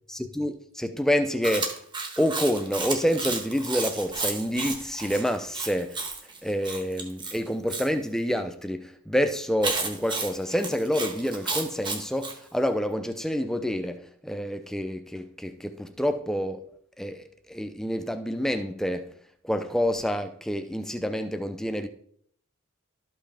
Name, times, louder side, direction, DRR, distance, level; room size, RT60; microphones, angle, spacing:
voice 1, 0.1-1.8 2.2-6.0 6.4-16.7 17.0-19.1 19.4-21.9, equal, ahead, 0.5 m, -28 dB
Chewing mastication, 1.4-7.9 9.6-12.4, right 3 dB, 20° right, 1.3 m, -32 dB
12.5 x 5.6 x 3.4 m
head